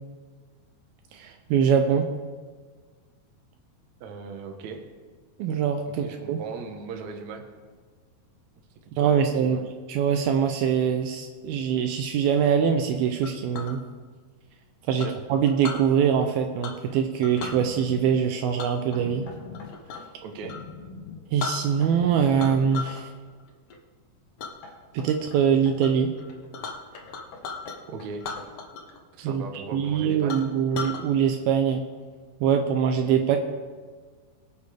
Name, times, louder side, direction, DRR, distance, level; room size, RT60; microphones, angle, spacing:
voice 1, 1.1-2.1 5.4-6.4 9.0-9.6 9.9-13.8 14.9-19.2 21.3-23.1 24.9-26.1 29.2-29.4 29.7-31.8 32.4-33.4, right 7 dB, 80° right, 5 dB, 2.4 m, -23 dB
voice 2, 4.0-4.8 5.9-7.5 8.9-9.6 14.8-15.2 20.2-20.6 27.9-28.3 29.2-30.3, right 4 dB, 65° right, 3 dB, 2.0 m, -38 dB
Chink clink, 13.2-13.8 15.0-15.8 16.6-16.9 17.2-17.6 18.6-20.1 20.4-20.6 21.1-21.2 21.4-22.0 22.4-23.0 23.4-23.8 24.4-24.5 25.0-25.4 25.8-25.9 26.2-27.8 28.2-29.0 29.2-29.3 29.8-29.9 30.3-31.0, left 5 dB, 70° left, 1.4 m, -36 dB
sound 1, 17.4-23.1, left 5 dB, 90° left, 2.9 m, -43 dB
Knock, 18.9-20.1 21.8-23.0 24.6-25.8 27.3-28.8, left 3 dB, 55° left, 3.9 m, -47 dB
23.0 x 8.3 x 3.5 m, 1.5 s
omnidirectional pair, 4.6 m